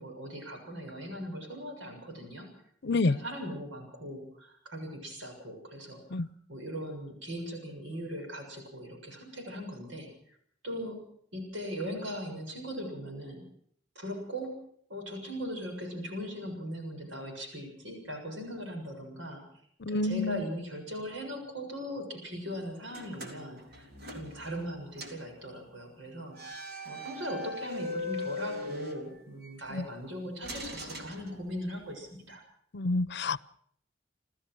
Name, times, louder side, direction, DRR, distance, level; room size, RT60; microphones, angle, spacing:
voice 1, 0.0-2.5 2.9-6.2 6.5-10.4 10.6-11.0 11.3-13.4 14.0-14.5 14.9-19.4 19.9-32.4, equal, 75° right, 3 dB, 7.0 m, -39 dB
voice 2, 2.8-3.2 6.1-6.3 19.9-20.4 29.7-29.8 32.7-33.4, left 2 dB, 60° left, 18 dB, 0.7 m, -28 dB
sound 1, 22.9-24.7 25.0-25.3 26.3-29.5 30.4-31.8, left 2 dB, 60° right, 3.7 m, -40 dB
30.0 x 14.0 x 6.3 m, 0.65 s
head